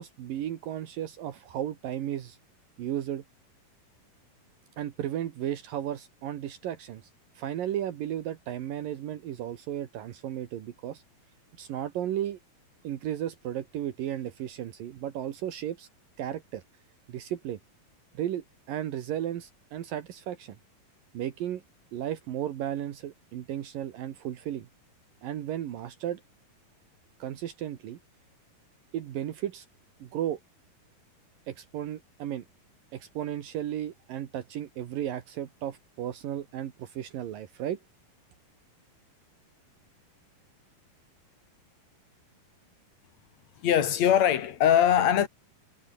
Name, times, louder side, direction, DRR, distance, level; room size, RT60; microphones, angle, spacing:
voice 1, 0.0-2.4 2.8-3.2 4.8-7.1 7.4-11.0 11.6-12.4 12.8-15.9 16.2-16.6 17.1-17.6 18.1-20.6 21.1-21.6 21.9-24.7 25.2-26.2 27.2-28.0 28.9-29.7 30.0-30.4 31.5-32.5 32.9-37.8, right 11 dB, 70° right, 3.2 m, -34 dB
voice 2, 43.6-45.3, left 9 dB, 55° left, 3.0 m, -22 dB
omnidirectional pair, 4.2 m